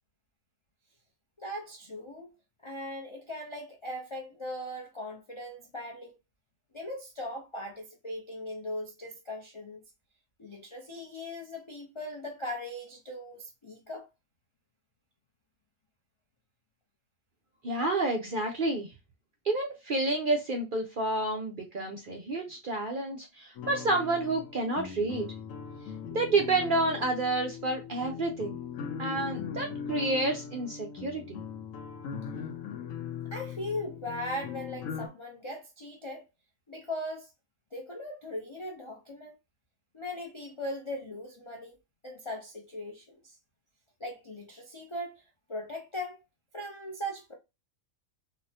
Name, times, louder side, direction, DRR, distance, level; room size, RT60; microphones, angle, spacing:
voice 1, 1.4-2.3 2.6-6.2 6.7-9.8 10.4-14.1 33.3-36.2 36.7-37.3 37.7-39.3 39.9-41.8 42.0-43.2 44.0-45.2 45.5-46.2 46.5-47.3, left 1 dB, 45° left, 0.3 m, -39 dB
voice 2, 17.6-18.9 19.4-25.3 26.1-28.6 29.0-31.4, right 2 dB, 55° right, 0.6 m, -29 dB
sound 1, 23.6-35.1, left 7 dB, 75° left, 1.0 m, -40 dB
4.0 x 2.1 x 2.7 m
omnidirectional pair, 1.5 m